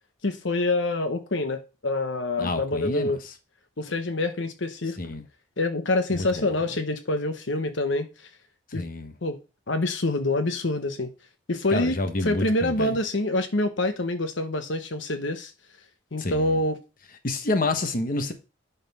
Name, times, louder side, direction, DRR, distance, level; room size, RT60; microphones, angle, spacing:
voice 1, 0.2-3.2 3.8-5.0 5.6-8.3 8.7-8.8 9.2-9.4 9.7-11.1 11.5-12.0 12.2-15.5 16.1-16.8, left 2 dB, 70° left, 1.0 m, -26 dB
voice 2, 2.4-3.1 5.0-5.2 6.1-6.5 8.7-9.1 11.7-12.9 16.2-16.6 17.2-18.3, left 2 dB, 45° left, 1.2 m, -28 dB
11.0 x 4.2 x 5.5 m
head